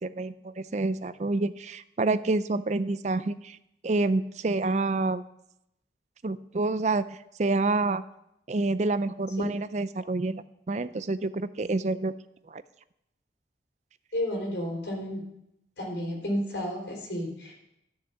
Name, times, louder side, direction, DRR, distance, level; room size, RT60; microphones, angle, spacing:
voice 1, 0.0-3.6 3.8-5.2 6.2-7.1 7.4-8.0 8.5-12.1 12.5-12.6, right 3 dB, 40° right, 14 dB, 0.4 m, -28 dB
voice 2, 14.1-15.2 15.8-17.5, equal, 75° left, -1 dB, 3.8 m, -31 dB
11.5 x 6.6 x 7.0 m, 0.82 s
head